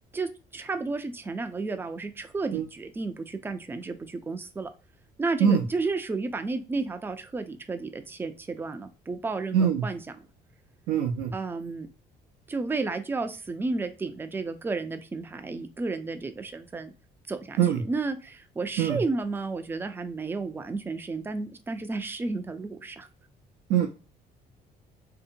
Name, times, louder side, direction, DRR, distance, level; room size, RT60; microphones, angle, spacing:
voice 1, 0.0-4.7 5.2-10.3 11.3-11.9 12.5-16.9 17.3-23.1, right 3 dB, 15° right, 7 dB, 0.3 m, -32 dB
voice 2, 9.5-9.8 10.9-11.3 17.6-17.8 18.8-18.9 23.7-23.9, right 8 dB, 80° right, 1 dB, 0.5 m, -22 dB
2.7 x 2.1 x 2.6 m, 0.33 s
cardioid pair, 110°, 17 cm